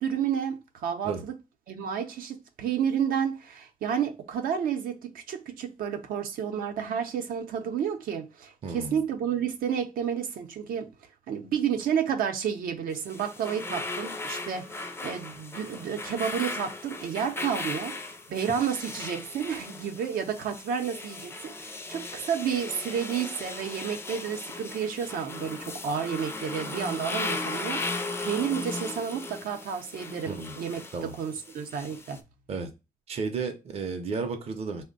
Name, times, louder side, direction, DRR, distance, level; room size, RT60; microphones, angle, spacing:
voice 1, 0.0-1.3 1.7-10.9 11.3-30.8 31.2-32.2, right 8 dB, 80° right, 0.6 m, -31 dB
voice 2, 8.6-9.0 30.3-30.5 30.9-31.1 32.5-32.7 33.1-34.8, right 4 dB, 45° right, 0.6 m, -33 dB
sound 1, 12.9-32.2, left 3 dB, 15° left, 0.4 m, -37 dB
3.4 x 2.1 x 3.8 m
cardioid pair, 140°, 15 cm